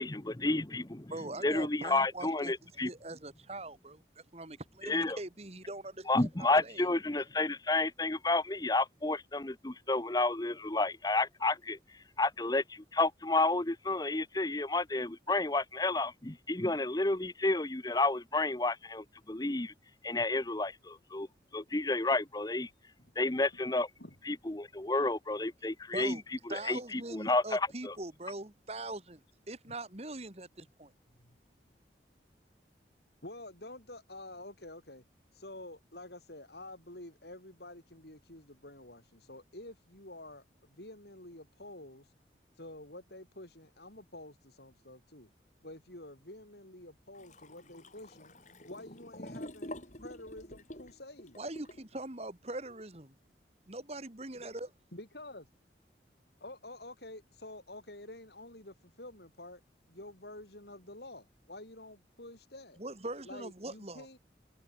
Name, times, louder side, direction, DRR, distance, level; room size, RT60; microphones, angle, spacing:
voice 1, 0.0-1.1 1.4-2.9 4.8-5.2 6.1-11.8 12.2-19.7 20.0-21.3 21.5-22.7 23.2-23.9 24.3-26.2 26.5-27.9, left 2 dB, 20° left, 0.9 m, -31 dB
voice 2, 1.1-6.9 25.9-26.2 26.5-30.9 51.4-53.1 53.7-54.7 62.8-64.1, right 2 dB, 35° right, 2.2 m, -42 dB
voice 3, 33.2-35.0 35.3-42.1 42.5-45.3 45.6-48.3 48.6-51.4 54.9-55.5 56.4-59.6 59.9-62.8 63.3-64.2, left 1 dB, 65° left, 6.9 m, -49 dB
sound 1, 47.2-51.9, left 1 dB, 40° left, 7.9 m, -47 dB
head